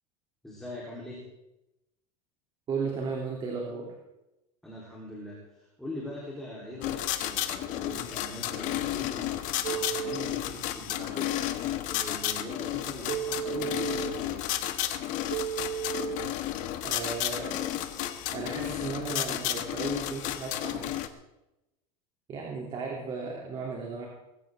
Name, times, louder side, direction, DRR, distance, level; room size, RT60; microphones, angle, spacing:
voice 1, 0.4-1.3 4.6-14.4, left 1 dB, ahead, -5 dB, 3.7 m, -42 dB
voice 2, 2.7-3.9 16.8-17.7 18.3-20.9 22.3-24.1, right 4 dB, 25° right, -1 dB, 3.1 m, -35 dB
sound 1, 6.8-21.1, left 12 dB, 45° left, 1.3 m, -32 dB
Telephone, 9.6-10.2 13.1-14.1 15.3-16.2, right 9 dB, 80° right, 1.4 m, -33 dB
20.5 x 15.5 x 3.7 m, 0.92 s
supercardioid pair, 155°, 18 cm